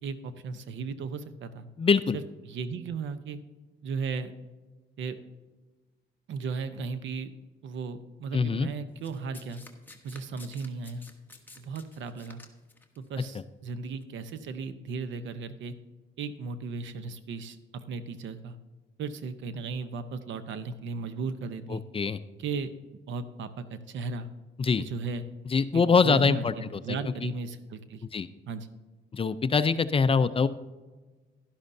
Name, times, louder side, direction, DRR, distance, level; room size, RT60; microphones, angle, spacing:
voice 1, 0.0-1.7 2.1-3.4 3.8-4.3 5.0-5.2 6.3-7.3 7.6-9.6 10.0-11.1 11.6-12.4 13.0-15.7 16.2-18.6 19.0-21.8 22.4-22.7 23.1-24.3 24.8-25.2 25.7-28.1 28.5-28.7, right 4 dB, 70° right, 12 dB, 0.8 m, -36 dB
voice 2, 1.8-2.2 8.3-8.7 21.7-22.2 24.6-24.8 25.5-27.0 27.2-27.3 28.1-28.3 29.1-30.5, left 5 dB, 30° left, 13 dB, 0.4 m, -24 dB
Domestic sounds home sounds, 9.0-13.0 13.9-14.0, left 2 dB, 10° left, 1.2 m, -51 dB
11.5 x 11.0 x 2.7 m, 1.3 s
cardioid pair, 90°, 20 cm